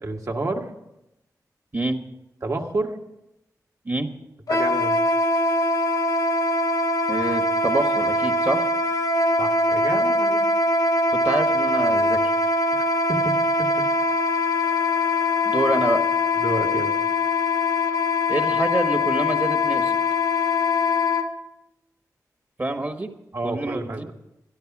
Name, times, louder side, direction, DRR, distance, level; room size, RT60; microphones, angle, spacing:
voice 1, 0.0-0.7 2.4-3.0 4.5-5.0 9.4-10.5 12.8-13.3 13.6-13.7 16.4-17.0 23.3-24.0, right 2 dB, 55° right, 2 dB, 1.6 m, -29 dB
Wind instrument woodwind instrument, 4.5-21.3, left 2 dB, 65° left, 1.1 m, -22 dB
voice 2, 7.1-8.7 11.1-12.3 15.4-16.0 18.3-20.0 22.6-23.1 23.4-24.2, right 2 dB, 30° right, 6 dB, 1.4 m, -26 dB
12.5 x 12.0 x 6.0 m, 0.90 s
wide cardioid pair, 85°, 7 cm